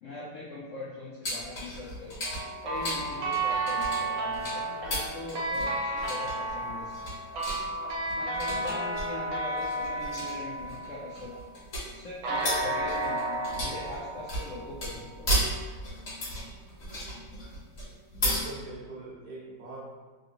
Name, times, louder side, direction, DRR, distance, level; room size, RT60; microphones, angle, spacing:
voice 1, 0.0-2.2 2.6-7.0 8.1-11.4 11.9-15.4 16.4-16.7 17.1-17.3, left 2 dB, 75° left, -5 dB, 0.7 m, -41 dB
sound 1, 1.2-18.4, equal, 50° left, 1.5 m, -35 dB
sound 2, 2.2-11.5 12.2-15.1, right 2 dB, 85° right, 1.4 m, -32 dB
voice 2, 18.2-19.9, right 2 dB, 65° right, -5 dB, 1.1 m, -42 dB
3.4 x 2.7 x 2.7 m, 1.4 s
omnidirectional pair, 1.8 m